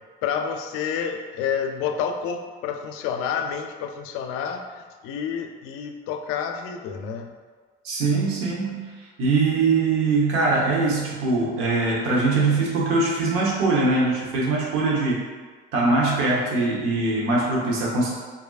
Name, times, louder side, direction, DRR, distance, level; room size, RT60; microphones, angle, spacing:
voice 1, 0.2-7.3, left 7 dB, 85° left, 5 dB, 0.4 m, -29 dB
voice 2, 7.8-8.9 9.2-15.2 15.7-18.1, right 3 dB, 85° right, -4 dB, 1.0 m, -22 dB
4.7 x 2.7 x 2.3 m, 1.5 s
supercardioid pair, 75°, 21 cm